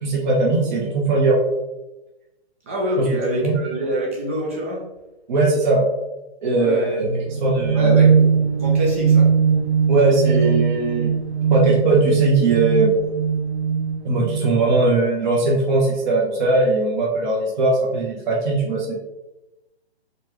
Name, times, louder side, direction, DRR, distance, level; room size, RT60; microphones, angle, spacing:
voice 1, 0.0-1.4 3.0-3.1 3.3-3.6 5.3-5.9 6.4-8.0 9.9-11.1 11.5-12.9 14.0-18.9, right 2 dB, 45° right, -2 dB, 1.0 m, -19 dB
voice 2, 2.7-4.8 6.6-6.9 7.7-8.3 8.6-9.3, equal, 15° right, -3 dB, 0.4 m, -25 dB
sound 1, 7.0-14.8, right 6 dB, 90° right, 0.9 m, -20 dB
4.4 x 3.2 x 3.0 m, 0.99 s
figure-of-eight pair, 135°, 33 cm